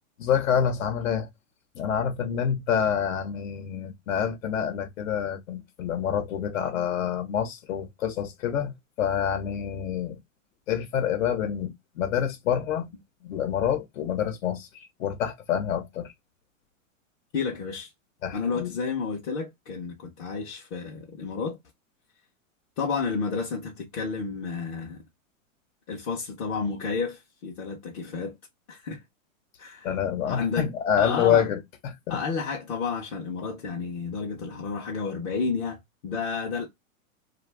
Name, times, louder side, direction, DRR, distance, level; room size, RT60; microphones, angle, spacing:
voice 1, 0.2-1.3 1.7-10.2 10.7-12.9 13.2-16.1 18.2-18.7 29.8-32.2, left 8 dB, 80° left, 0.8 m, -27 dB
voice 2, 17.3-17.9 18.3-21.6 22.8-25.0 25.9-28.4 28.7-29.0 29.6-29.9 30.2-30.7 31.0-31.4 32.1-36.7, left 5 dB, 30° left, 0.4 m, -31 dB
2.5 x 2.3 x 3.2 m
supercardioid pair, 150°, 40 cm